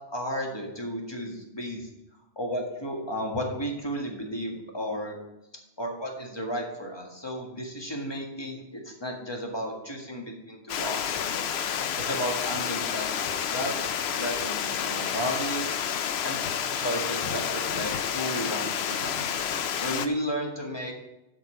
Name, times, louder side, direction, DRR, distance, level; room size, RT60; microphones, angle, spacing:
voice 1, 0.1-1.9 2.4-5.2 5.8-11.5 12.0-15.7 16.2-19.3 19.8-20.9, equal, 20° left, 0 dB, 1.8 m, -33 dB
Water, 10.7-20.1, left 8 dB, 65° left, 0.9 m, -30 dB
8.0 x 6.1 x 7.6 m, 0.91 s
omnidirectional pair, 1.2 m